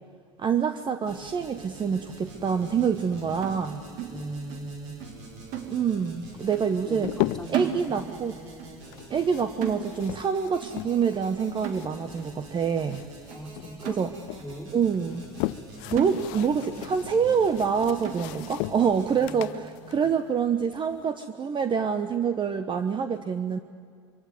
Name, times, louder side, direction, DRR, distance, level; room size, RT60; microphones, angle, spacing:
voice 1, 0.4-3.8 5.7-7.1 7.5-8.4 9.1-13.0 13.9-14.1 14.7-15.2 15.9-23.6, right 6 dB, 30° right, 9 dB, 1.0 m, -26 dB
sound 1, 1.0-19.2, right 2 dB, 80° right, 5.3 m, -46 dB
sound 2, 3.4-4.7 5.0-5.2 5.5-6.2 6.5-6.8 7.0-8.3 8.6-8.8 9.1-10.3 10.6-10.9 11.2-11.3 11.6-12.3 12.8-12.9 13.3-13.4 13.8-14.5 14.9-15.0 15.5-15.6 16.0-16.7 17.0-17.1 17.5-17.7 18.0-18.6 19.1-19.2 19.5-19.8, right 9 dB, 60° right, 2.0 m, -36 dB
voice 2, 4.1-5.0 6.8-8.0 13.3-14.1 14.4-14.7 19.1-20.1, right 1 dB, 5° left, -2 dB, 4.1 m, -40 dB
sound 3, 6.4-7.7 8.8-11.2 11.4-13.3 13.6-14.4 15.0-21.0, left 19 dB, 65° left, 0.6 m, -36 dB
24.0 x 16.5 x 9.4 m, 2.3 s
hypercardioid pair, 80°, 15 cm